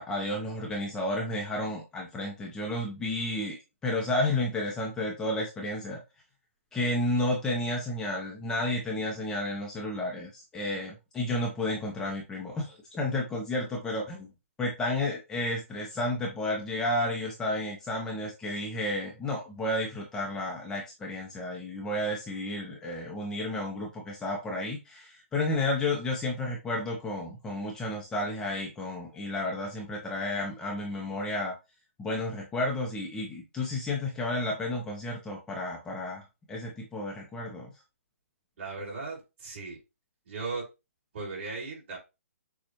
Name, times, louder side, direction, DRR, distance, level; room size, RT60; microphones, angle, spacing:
voice 1, 0.0-3.6 3.8-6.0 6.7-14.3 14.6-31.5 32.0-37.7, left 1 dB, 10° left, -1 dB, 0.7 m, -32 dB
voice 2, 38.6-39.8 40.3-40.6 41.1-42.0, right 4 dB, 45° right, -2 dB, 2.9 m, -37 dB
6.5 x 2.4 x 3.0 m, 0.26 s
hypercardioid pair, 155°, 8 cm